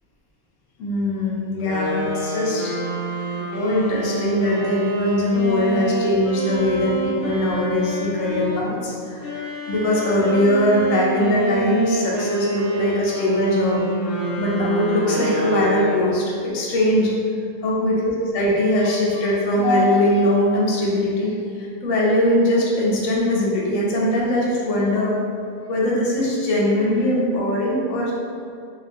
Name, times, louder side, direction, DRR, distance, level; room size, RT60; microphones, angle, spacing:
voice 1, 0.8-2.7 3.6-13.9 14.4-17.1 17.6-25.2 25.7-28.1, left 1 dB, 75° left, -4 dB, 0.9 m, -21 dB
sound 1, 1.6-8.6 9.2-16.4, right 2 dB, 50° left, 0.6 m, -27 dB
2.3 x 2.3 x 2.5 m, 2.2 s
omnidirectional pair, 1.5 m